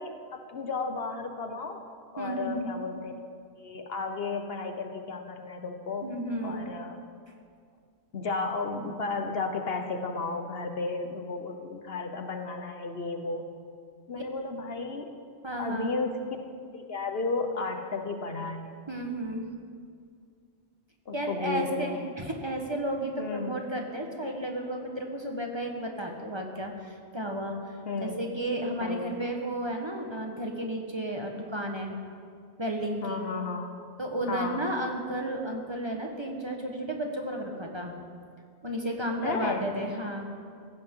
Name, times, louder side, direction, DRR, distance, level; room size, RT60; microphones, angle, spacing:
voice 1, 0.0-1.8 2.1-3.1 3.6-6.1 6.4-7.0 8.1-13.5 14.1-15.1 15.6-16.4 16.7-18.9 21.1-22.1 23.2-23.6 27.9-28.2 28.8-29.1 33.0-33.7 34.3-34.7 39.2-39.7, left 3 dB, 60° left, 5 dB, 1.2 m, -33 dB
voice 2, 2.2-2.7 6.0-6.7 14.1-14.2 15.4-15.9 18.9-19.5 21.1-27.7 28.0-32.0 32.6-33.2 34.0-37.9 38.6-40.3, right 1 dB, 25° right, 1 dB, 1.3 m, -33 dB
16.5 x 15.5 x 3.8 m, 2.2 s
omnidirectional pair, 1.1 m